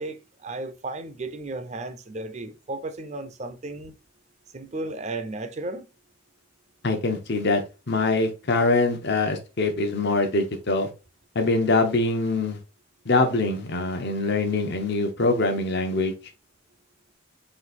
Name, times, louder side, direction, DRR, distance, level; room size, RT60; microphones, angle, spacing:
voice 1, 0.0-4.0 4.5-5.9, right 2 dB, 35° right, 0.5 m, -34 dB
voice 2, 6.8-10.9 11.3-12.6 13.0-16.1, left 3 dB, 55° left, 0.9 m, -23 dB
4.0 x 2.6 x 4.1 m
head